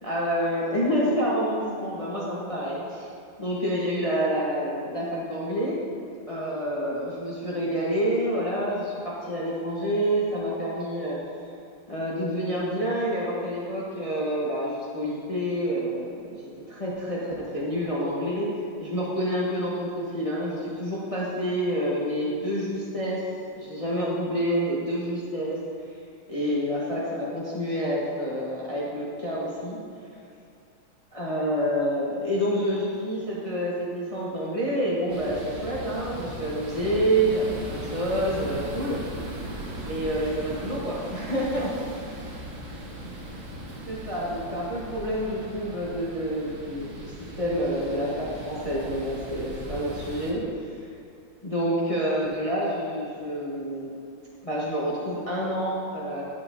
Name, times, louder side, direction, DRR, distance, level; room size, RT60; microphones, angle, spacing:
voice 1, 0.0-3.1 3.4-5.8 6.3-11.2 11.9-18.5 18.8-23.2 23.5-25.6 26.3-29.8 31.1-39.0 39.2-39.4 39.8-41.7 43.8-47.1 47.4-50.4 51.4-53.9 54.4-56.2, equal, 40° left, -6 dB, 0.5 m, -28 dB
sound 1, 35.1-50.3, right 1 dB, 50° right, 1.5 m, -38 dB
10.5 x 6.7 x 2.6 m, 2.5 s
omnidirectional pair, 2.3 m